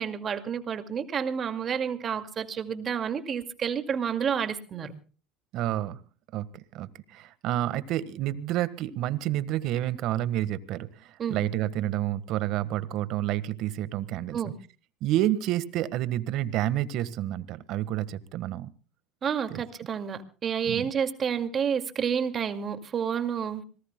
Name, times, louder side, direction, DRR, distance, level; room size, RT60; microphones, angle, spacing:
voice 1, 0.0-4.9 11.2-11.4 14.3-14.5 19.2-23.6, right 7 dB, 35° right, 8 dB, 2.2 m, -30 dB
voice 2, 5.5-6.0 6.3-14.5 15.0-18.7 19.5-19.6 20.6-20.9, right 13 dB, 60° right, 14 dB, 1.5 m, -29 dB
26.0 x 18.5 x 2.2 m, 0.39 s
supercardioid pair, 100°, 0 cm